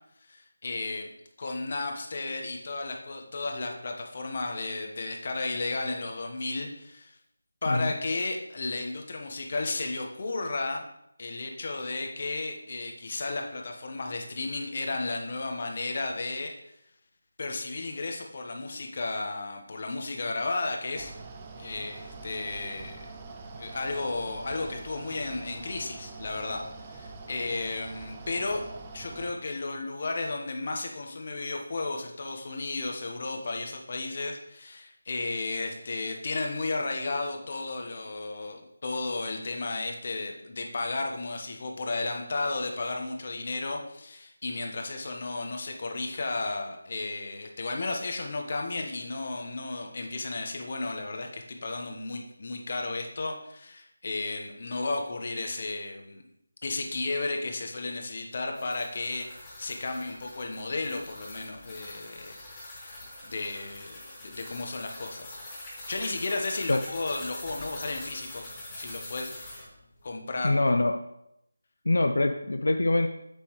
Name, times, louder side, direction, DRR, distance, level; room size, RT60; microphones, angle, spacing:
voice 1, 0.2-1.1 1.4-7.1 7.6-10.8 11.2-16.5 17.4-21.1 21.6-23.0 23.6-28.6 28.9-56.2 56.6-62.3 62.6-63.0 63.2-65.4 65.9-69.3 70.0-70.7, left 3 dB, 45° left, 3 dB, 1.2 m, -33 dB
Mechanical fan, 20.9-29.3, right 3 dB, 20° right, 0.6 m, -44 dB
sound 1, 58.3-69.7, left 1 dB, 15° left, 3.3 m, -44 dB
voice 2, 70.4-70.9 71.8-73.1, left 2 dB, 75° left, 6 dB, 0.5 m, -24 dB
7.5 x 7.1 x 3.2 m, 0.79 s
figure-of-eight pair, 165°, 0 cm